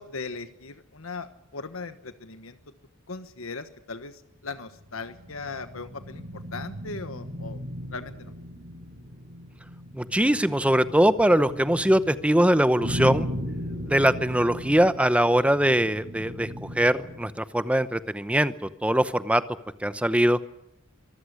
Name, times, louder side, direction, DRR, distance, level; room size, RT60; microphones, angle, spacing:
voice 1, 0.0-2.6 3.1-7.6 7.9-8.3, left 4 dB, 75° left, 10 dB, 1.3 m, -38 dB
sound 1, 4.7-17.4, equal, 55° right, 5.4 m, -37 dB
voice 2, 9.9-13.3 13.9-19.4 19.8-20.4, right 1 dB, 5° right, 12 dB, 0.8 m, -22 dB
25.0 x 14.5 x 9.8 m, 0.82 s
head